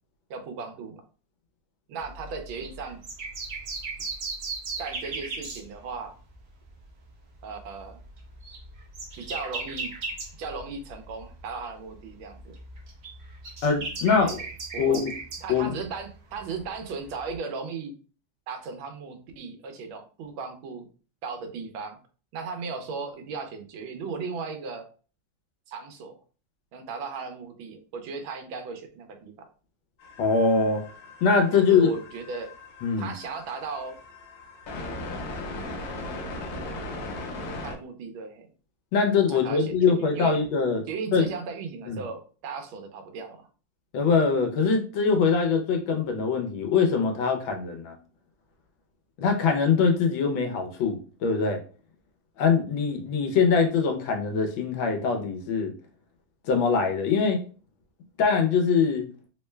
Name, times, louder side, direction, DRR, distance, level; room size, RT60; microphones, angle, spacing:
voice 1, 0.3-1.0 1.9-3.0 4.8-6.1 7.4-8.0 9.2-9.9 10.4-12.5 14.2-14.4 14.7-15.0 15.4-17.9 18.5-20.9 21.2-22.0 22.3-24.9 25.7-26.2 26.7-29.5 31.5-32.5 33.0-34.0 37.3-38.5 39.3-40.3 40.9-43.5, right 4 dB, 80° right, 6 dB, 1.4 m, -36 dB
sound 1, 2.0-6.3 6.6-6.9 7.4-11.7 12.0-17.3, right 3 dB, 55° right, 0.7 m, -38 dB
voice 2, 13.6-14.4 14.8-15.1 15.5-15.7 30.2-30.8 31.2-31.9 32.8-33.1 38.9-40.8 41.1-41.3 41.9-42.0 43.9-47.9 49.2-51.6 52.4-55.7 56.5-57.4 58.2-59.1, left 5 dB, 80° left, 5 dB, 1.4 m, -23 dB
sound 2, 30.0-37.7, left 2 dB, 60° left, 1.1 m, -38 dB
3.7 x 2.2 x 3.1 m, 0.38 s
omnidirectional pair, 2.2 m